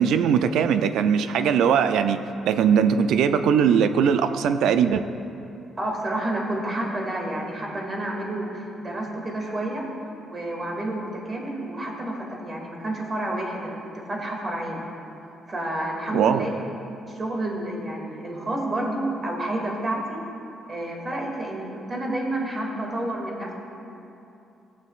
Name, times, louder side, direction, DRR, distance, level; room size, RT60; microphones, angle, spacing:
voice 1, 0.0-2.2 2.5-5.0 16.1-16.5, right 7 dB, 80° right, 10 dB, 0.4 m, -20 dB
voice 2, 5.8-9.9 10.2-13.8 14.1-14.8 15.5-16.6 17.0-20.2 20.7-23.5, right 1 dB, 35° right, -2 dB, 2.3 m, -29 dB
18.0 x 7.2 x 2.5 m, 2.8 s
cardioid pair, 90°, 0 cm